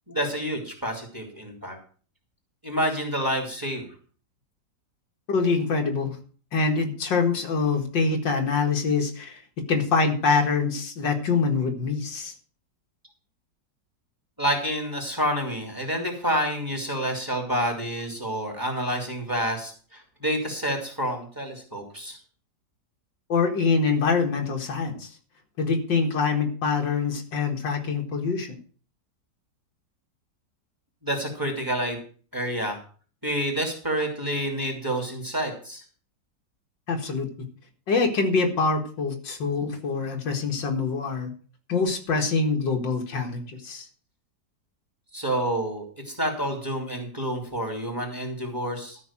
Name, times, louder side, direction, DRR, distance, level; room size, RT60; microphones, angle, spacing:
voice 1, 0.1-1.8 2.6-3.9 14.4-22.2 31.0-32.0 32.3-32.8 33.2-35.8 45.1-49.0, equal, 10° right, 2 dB, 3.1 m, -28 dB
voice 2, 5.3-6.2 6.5-9.4 9.7-12.3 23.3-25.1 25.6-28.6 36.9-37.3 37.9-41.3 41.7-43.9, left 4 dB, 80° left, 3 dB, 2.5 m, -25 dB
13.0 x 5.8 x 7.4 m, 0.42 s
omnidirectional pair, 1.9 m